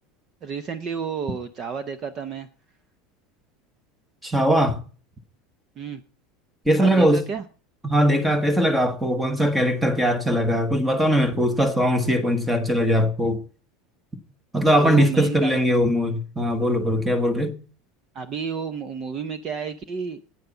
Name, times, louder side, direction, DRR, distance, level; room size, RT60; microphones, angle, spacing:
voice 1, 0.4-2.5 5.8-6.0 6.8-7.4 14.8-15.5 18.1-20.2, right 6 dB, 30° right, 0.7 m, -31 dB
voice 2, 4.2-4.8 6.7-7.2 7.8-13.4 14.5-17.5, equal, 5° right, 1.2 m, -20 dB
9.3 x 9.1 x 7.0 m
supercardioid pair, 165°, 0 cm